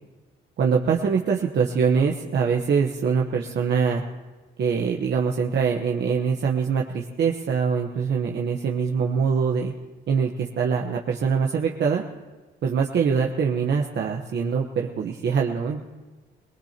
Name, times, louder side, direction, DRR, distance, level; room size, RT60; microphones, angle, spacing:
voice 1, 0.6-4.0 4.6-9.7 10.1-12.0 12.6-15.8, right 6 dB, 60° right, 0 dB, 1.1 m, -23 dB
22.5 x 19.0 x 2.9 m, 1.3 s
cardioid pair, 90°, 20 cm